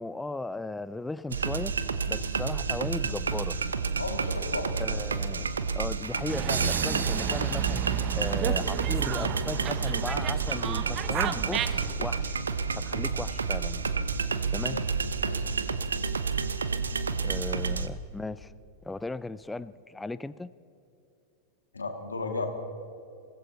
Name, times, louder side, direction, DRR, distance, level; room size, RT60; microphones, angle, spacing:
voice 1, 0.0-1.7 2.1-3.6 4.8-7.8 8.1-12.4 12.8-13.9 14.5-14.8 17.2-18.5 18.8-20.5, left 2 dB, 10° left, 15 dB, 0.4 m, -36 dB
sound 1, 1.3-17.9, right 5 dB, 85° right, 0.7 m, -30 dB
voice 2, 4.0-4.9 12.9-13.0 14.6-14.8 15.2-15.4 21.7-22.5, left 3 dB, 90° left, 5 dB, 2.0 m, -34 dB
Dog, 6.3-11.9, right 10 dB, 40° right, 0.8 m, -33 dB
21.5 x 15.5 x 4.0 m, 2.6 s
hypercardioid pair, 95°, 0 cm